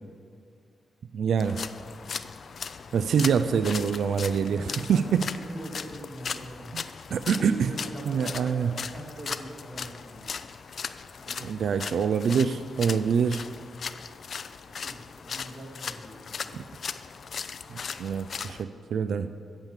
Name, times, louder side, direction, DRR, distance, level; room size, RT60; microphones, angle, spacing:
voice 1, 1.1-1.6 2.9-4.6 4.9-5.3 6.7-6.8 7.1-7.7 8.1-8.7 11.4-13.5 16.5-16.6 17.7-19.3, right 7 dB, 75° right, 11 dB, 0.3 m, -25 dB
sound 1, 1.4-18.6, left 6 dB, 55° left, 0.4 m, -38 dB
voice 2, 4.4-6.7 7.3-10.3 11.2-11.8 14.7-16.6, right 1 dB, 60° right, -3 dB, 2.8 m, -43 dB
8.8 x 7.4 x 7.4 m, 2.4 s
cardioid pair, 105°, 0 cm